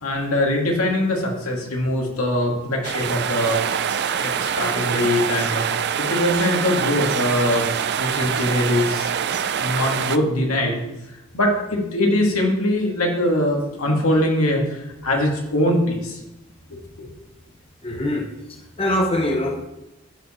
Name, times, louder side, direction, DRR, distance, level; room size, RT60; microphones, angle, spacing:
voice 1, 0.0-3.6 4.2-7.7 8.0-9.1 9.6-10.8 11.3-16.2 16.7-17.1, left 1 dB, 90° left, 0 dB, 2.2 m, -22 dB
sound 1, 2.8-10.2, right 7 dB, 50° right, 0.5 m, -24 dB
voice 2, 17.8-19.7, left 1 dB, 25° left, 2 dB, 0.9 m, -24 dB
14.5 x 5.0 x 4.4 m, 0.96 s
head